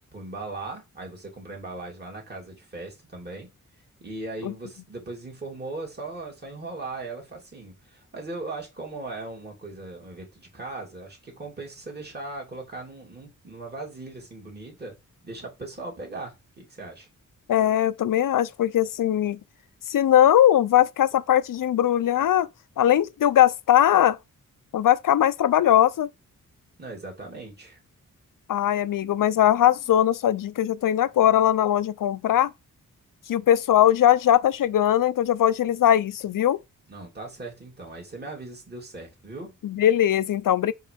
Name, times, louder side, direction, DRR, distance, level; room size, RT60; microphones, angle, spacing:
voice 1, 0.1-3.5 4.0-15.0 15.2-17.1 26.8-27.8 36.9-39.5, right 2 dB, 30° right, 2.7 m, -38 dB
voice 2, 17.5-19.4 19.9-22.5 22.8-24.2 24.7-26.1 28.5-32.5 33.3-36.6 39.6-40.7, left 11 dB, 75° left, 0.6 m, -20 dB
5.7 x 5.5 x 5.1 m
wide cardioid pair, 160°, 33 cm